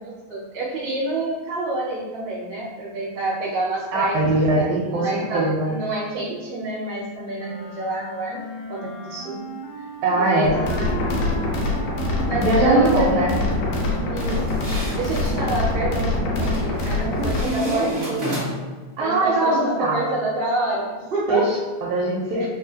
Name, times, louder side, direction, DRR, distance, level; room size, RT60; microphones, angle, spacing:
voice 1, 0.0-4.2 4.5-8.4 8.7-9.4 10.1-10.9 12.3-13.3 14.1-14.7 14.9-18.4 19.0-21.5 22.3-22.5, right 2 dB, 50° right, -9 dB, 1.9 m, -28 dB
voice 2, 3.9-5.8 10.0-10.6 12.4-13.3 17.2-17.6 19.0-20.0 21.3-22.5, right 2 dB, 80° right, -4 dB, 1.9 m, -21 dB
sound 1, 7.4-14.7, equal, 70° left, 1.8 m, -37 dB
sound 2, 10.4-17.5, left 2 dB, 90° left, 2.2 m, -24 dB
sound 3, 14.2-15.4 16.4-16.9 17.3-18.8, equal, 65° right, 0.6 m, -30 dB
4.7 x 2.4 x 2.6 m, 1.3 s
omnidirectional pair, 3.5 m